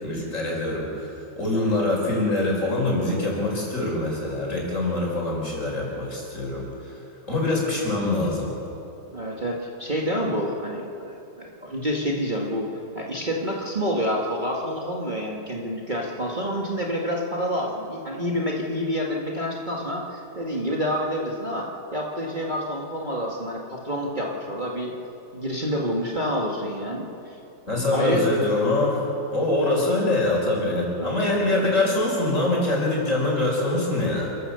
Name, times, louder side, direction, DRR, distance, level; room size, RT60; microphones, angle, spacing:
voice 1, 0.0-7.0 7.3-8.5 27.7-29.1 29.3-34.3, left 2 dB, 45° left, -2 dB, 5.6 m, -24 dB
voice 2, 9.1-25.0 25.3-27.4 27.9-28.3 31.0-31.3, equal, 25° right, -2 dB, 1.9 m, -28 dB
28.0 x 15.0 x 6.8 m, 3.0 s
omnidirectional pair, 1.8 m